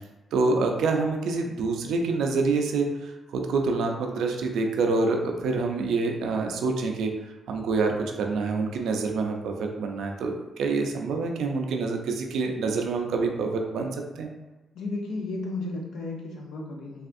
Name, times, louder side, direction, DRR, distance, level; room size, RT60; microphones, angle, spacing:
voice 1, 0.3-7.1 7.5-14.3, right 3 dB, 80° right, 3 dB, 0.4 m, -26 dB
voice 2, 14.7-17.1, left 2 dB, 80° left, 0 dB, 0.6 m, -33 dB
3.4 x 2.3 x 2.5 m, 1.1 s
cardioid pair, 90°, 0 cm